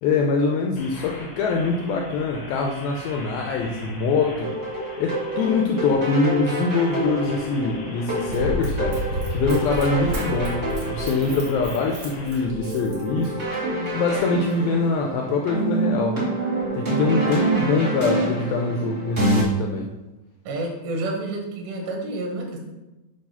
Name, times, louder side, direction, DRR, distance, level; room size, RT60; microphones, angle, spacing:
voice 1, 0.0-4.6 5.0-9.0 9.3-13.4 13.9-16.3 16.7-19.9, left 4 dB, 80° left, 1 dB, 2.1 m, -24 dB
sound 1, 0.7-12.4, left 2 dB, 65° left, 1.3 m, -42 dB
sound 2, 4.4-19.4, right 2 dB, 30° right, 1.2 m, -27 dB
Run, 8.3-13.5 14.1-14.2, equal, 50° right, 1.4 m, -31 dB
voice 2, 17.4-17.9 20.5-22.6, right 2 dB, 85° right, 1 dB, 3.7 m, -29 dB
8.9 x 4.0 x 5.5 m, 1.0 s
omnidirectional pair, 4.9 m